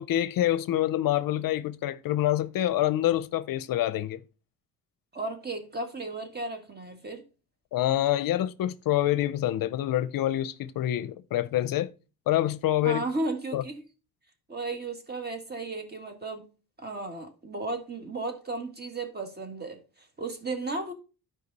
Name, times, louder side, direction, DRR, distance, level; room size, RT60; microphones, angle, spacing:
voice 1, 0.0-4.2 7.7-11.9 12.3-13.0 13.5-13.6, left 13 dB, 60° left, 0.6 m, -26 dB
voice 2, 5.1-7.2 12.8-13.8 14.5-16.4 16.8-20.9, right 2 dB, 25° right, 1.8 m, -34 dB
11.5 x 4.9 x 4.0 m
cardioid pair, 115°, 38 cm